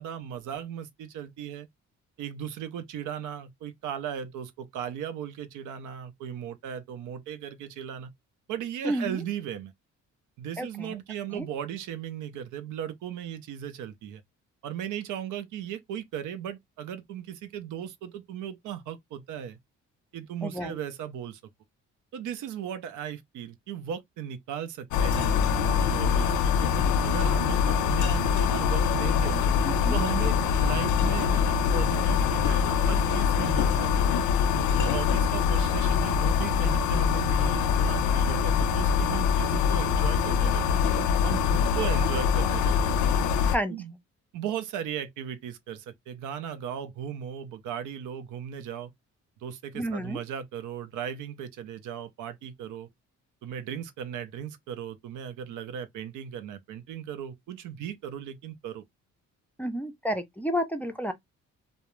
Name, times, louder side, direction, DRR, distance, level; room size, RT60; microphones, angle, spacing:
voice 1, 0.0-1.7 2.2-8.1 8.5-9.7 10.4-14.2 14.6-19.6 20.1-21.4 22.1-29.5 29.9-34.2 34.7-40.8 41.2-43.0 43.7-43.9 44.3-48.9 49.4-52.9 53.4-58.8, right 9 dB, 80° right, 0.5 m, -37 dB
voice 2, 10.6-10.9 11.3-11.5 20.4-20.8 29.6-30.0 43.4-43.8 49.7-50.2 59.6-61.1, equal, 5° left, 0.4 m, -30 dB
sound 1, 24.9-43.6, left 7 dB, 70° left, 0.5 m, -24 dB
2.3 x 2.1 x 3.0 m
cardioid pair, 90°, 30 cm